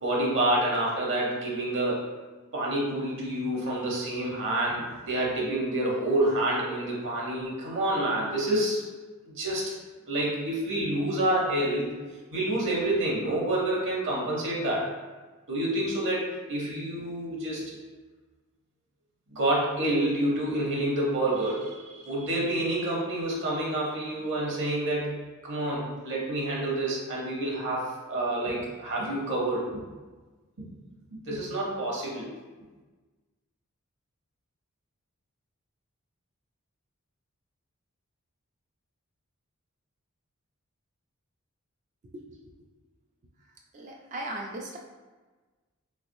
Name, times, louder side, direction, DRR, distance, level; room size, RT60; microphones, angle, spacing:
voice 1, 0.0-2.0 2.5-8.8 9.2-9.7 10.1-11.9 12.3-14.9 15.5-17.7 19.3-25.2 25.4-29.6 30.6-30.7 31.3-32.3, right 1 dB, 55° right, -3 dB, 0.8 m, -28 dB
voice 2, 43.7-44.8, right 1 dB, 35° right, 0 dB, 0.3 m, -37 dB
3.3 x 3.2 x 2.6 m, 1.3 s
head